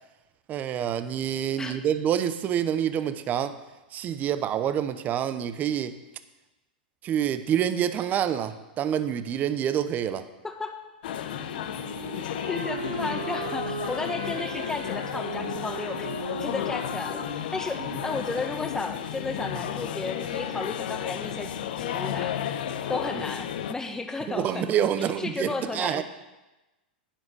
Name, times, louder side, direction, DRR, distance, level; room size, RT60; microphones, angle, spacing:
voice 1, 0.5-3.6 3.9-6.0 7.0-10.3 24.3-26.0, right 9 dB, 35° right, 12 dB, 0.9 m, -27 dB
voice 2, 10.4-10.8 12.5-22.4 22.9-24.7 25.0-26.0, left 3 dB, 10° left, 5 dB, 1.5 m, -34 dB
sound 1, 11.0-23.7, left 9 dB, 65° left, 0.9 m, -33 dB
Wind instrument woodwind instrument, 11.3-18.1, right 6 dB, 90° right, 1.1 m, -39 dB
10.0 x 9.6 x 6.3 m, 1.1 s
hypercardioid pair, 105°, 5 cm